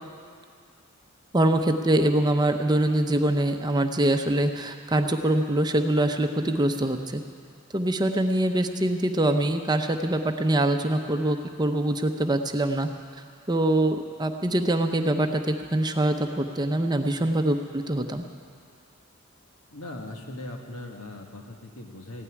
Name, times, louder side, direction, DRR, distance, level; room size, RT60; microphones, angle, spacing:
voice 1, 1.3-7.2 7.7-12.9 13.5-18.2, right 1 dB, 20° right, 6 dB, 0.7 m, -24 dB
voice 2, 19.7-22.2, left 1 dB, 80° left, 2 dB, 1.6 m, -39 dB
15.5 x 9.2 x 9.6 m, 2.2 s
head